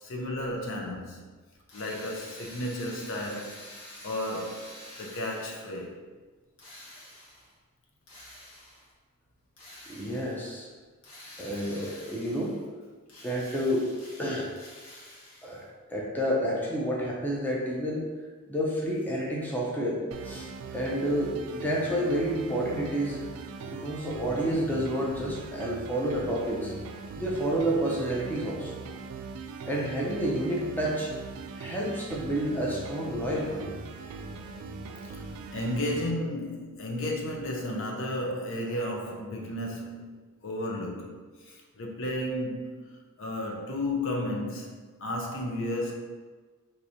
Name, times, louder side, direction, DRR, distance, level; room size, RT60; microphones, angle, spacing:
voice 1, 0.0-1.2 1.7-3.6 4.0-6.0 35.1-40.1 40.4-42.9 43.2-44.7 45.0-45.9, left 1 dB, 60° left, 0.6 m, -33 dB
Drill, 1.7-5.8 6.6-7.5 8.1-8.9 9.6-10.5 11.0-12.7 13.1-15.7, left 1 dB, 80° left, 1.0 m, -48 dB
voice 2, 9.9-10.7 11.4-12.6 13.2-13.9 14.2-14.5 15.4-15.6 15.9-18.1 18.5-23.2 23.7-26.7 27.1-28.7 29.7-31.1 31.5-33.7, equal, 10° left, 0.5 m, -29 dB
sound 1, 20.1-36.1, right 4 dB, 65° right, 0.3 m, -41 dB
4.6 x 2.7 x 2.7 m
head